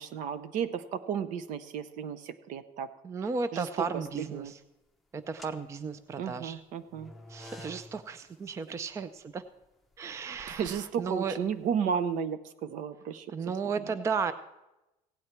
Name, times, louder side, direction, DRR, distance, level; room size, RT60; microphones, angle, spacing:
voice 1, 0.0-2.9 3.5-3.7 4.1-4.5 6.2-7.1 10.5-13.3, right 7 dB, 60° right, 13 dB, 0.8 m, -33 dB
voice 2, 3.0-4.6 5.1-6.6 7.3-9.4 10.0-11.4 13.3-14.3, right 5 dB, 20° right, 13 dB, 0.4 m, -34 dB
sound 1, 3.8-4.5 5.2-12.1, left 2 dB, ahead, 0.9 m, -53 dB
16.5 x 9.4 x 4.4 m, 0.95 s
cardioid pair, 150°, 15 cm